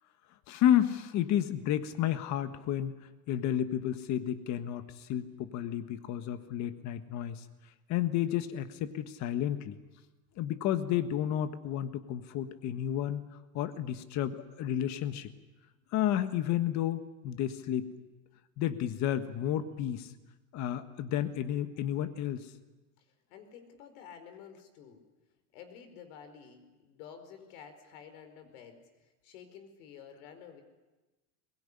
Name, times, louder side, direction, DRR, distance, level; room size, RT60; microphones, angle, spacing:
voice 1, 0.5-2.9 3.3-7.4 7.9-9.8 10.4-13.2 13.5-15.3 15.9-17.9 18.6-20.1 20.5-22.5, left 11 dB, 35° left, 10 dB, 1.5 m, -31 dB
voice 2, 23.3-25.0 25.5-30.6, left 7 dB, 65° left, 8 dB, 4.8 m, -51 dB
22.5 x 21.5 x 9.9 m, 1.1 s
supercardioid pair, 150°, 46 cm